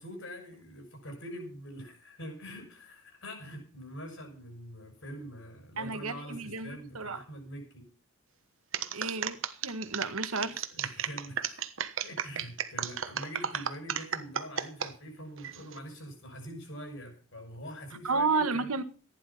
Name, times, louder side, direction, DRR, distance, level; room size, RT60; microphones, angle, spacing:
voice 1, 0.0-7.9 10.7-18.7, equal, 60° left, 6.5 m, -44 dB
voice 2, 5.8-7.2 8.9-10.6 18.0-18.8, right 4 dB, 85° right, 1.6 m, -32 dB
sound 1, 8.7-14.9 15.4-15.8, right 8 dB, 60° right, 1.3 m, -33 dB
15.0 x 10.5 x 5.9 m
head